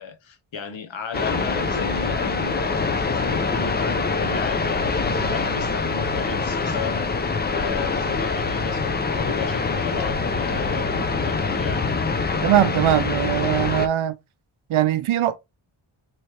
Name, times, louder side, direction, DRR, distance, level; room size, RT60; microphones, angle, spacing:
voice 1, 0.0-11.9, left 6 dB, 65° left, 0.8 m, -34 dB
sound 1, 1.1-13.9, left 4 dB, 25° left, 0.3 m, -24 dB
voice 2, 12.4-14.2 14.7-15.4, right 12 dB, 75° right, 0.6 m, -21 dB
3.3 x 3.1 x 2.8 m
wide cardioid pair, 140°, 50 cm